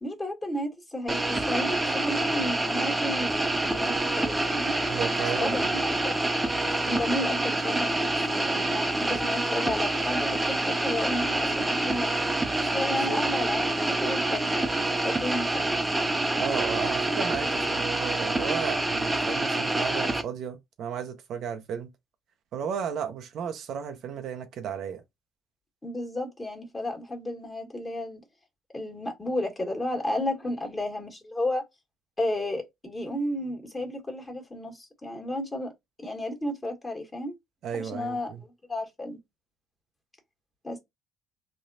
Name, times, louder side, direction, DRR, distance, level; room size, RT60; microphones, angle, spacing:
voice 1, 0.0-3.3 3.6-4.7 5.4-5.8 6.0-6.3 6.9-12.1 12.7-14.5 15.0-15.8 17.0-17.1 25.8-28.2 28.7-31.6 32.2-35.7 36.0-37.4 37.7-39.2 40.6-40.8, left 1 dB, 20° left, 1.4 m, -32 dB
sound 1, 1.1-20.2, right 2 dB, 15° right, 0.6 m, -27 dB
voice 2, 4.9-5.7 12.9-13.2 16.4-21.9 22.5-25.0 37.6-38.4, right 7 dB, 65° right, 0.5 m, -34 dB
3.2 x 2.2 x 2.6 m
supercardioid pair, 70°, 0 cm